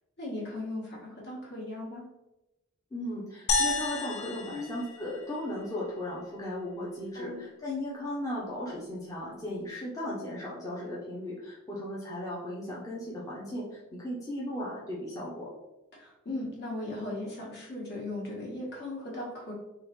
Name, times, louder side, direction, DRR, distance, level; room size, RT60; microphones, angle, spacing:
voice 1, 0.2-2.0 4.5-4.7 7.1-7.4 15.9-19.5, left 2 dB, 55° left, -4 dB, 1.4 m, -37 dB
voice 2, 2.9-15.5, left 1 dB, 15° left, -7 dB, 0.7 m, -36 dB
sound 1, 3.5-5.9, left 3 dB, 70° left, 0.5 m, -31 dB
3.6 x 3.1 x 3.1 m, 0.95 s
head